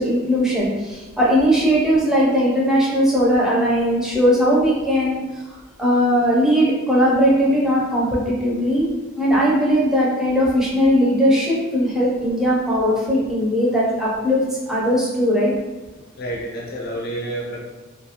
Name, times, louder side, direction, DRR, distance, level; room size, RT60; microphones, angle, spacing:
voice 1, 0.0-5.2 5.8-8.9 9.2-14.4 14.7-15.5, equal, 5° right, -6 dB, 0.6 m, -18 dB
voice 2, 16.2-17.6, right 1 dB, 50° left, -3 dB, 0.8 m, -29 dB
2.7 x 2.6 x 2.9 m, 1.2 s
head